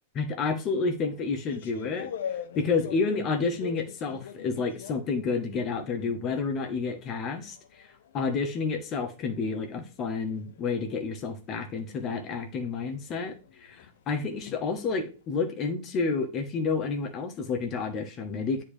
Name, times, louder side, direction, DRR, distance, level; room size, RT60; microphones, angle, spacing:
voice 1, 0.1-18.6, left 4 dB, 35° left, 1.3 m, -30 dB
sound 1, 0.8-6.0 6.3-15.3, left 9 dB, 65° left, 0.8 m, -44 dB
9.9 x 3.3 x 3.3 m
figure-of-eight pair, 100°, 0 cm